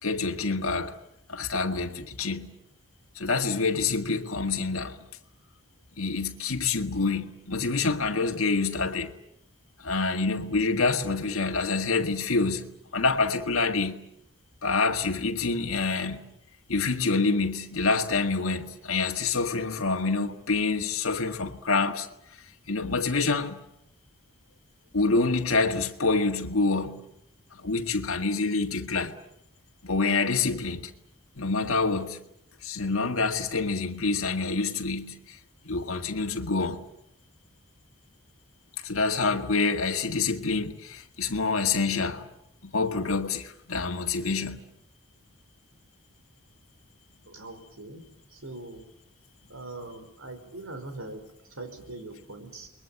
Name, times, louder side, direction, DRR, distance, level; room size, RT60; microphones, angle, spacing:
voice 1, 0.0-0.9 1.3-2.5 3.1-5.0 6.0-9.1 9.8-14.0 14.6-16.3 16.7-22.1 22.7-23.6 24.9-27.0 27.5-29.1 29.8-30.9 31.4-32.2 32.6-35.4 35.6-36.8 38.8-42.3 42.6-44.6, left 3 dB, 80° left, 1.8 m, -27 dB
voice 2, 47.3-48.8 49.5-52.7, right 2 dB, 80° right, 5.2 m, -42 dB
29.5 x 21.5 x 8.8 m
head